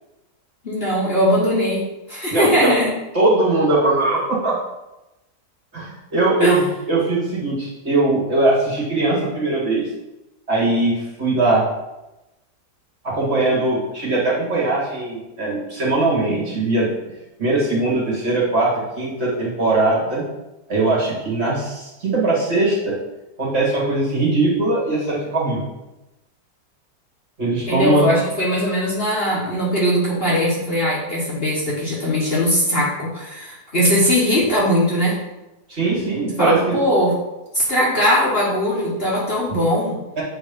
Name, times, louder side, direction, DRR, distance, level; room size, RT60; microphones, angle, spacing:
voice 1, 0.6-2.9 6.4-6.6 27.7-35.2 36.4-37.1 37.5-40.0, equal, 40° left, -5 dB, 1.4 m, -20 dB
voice 2, 2.3-2.8 3.1-4.5 5.7-9.8 10.5-11.6 13.0-16.9 17.4-20.2 20.7-23.0 23.4-25.6 27.4-28.1 35.7-36.8 40.2-40.3, right 2 dB, 40° right, -6 dB, 1.9 m, -20 dB
7.3 x 3.1 x 5.2 m, 0.98 s
omnidirectional pair, 1.7 m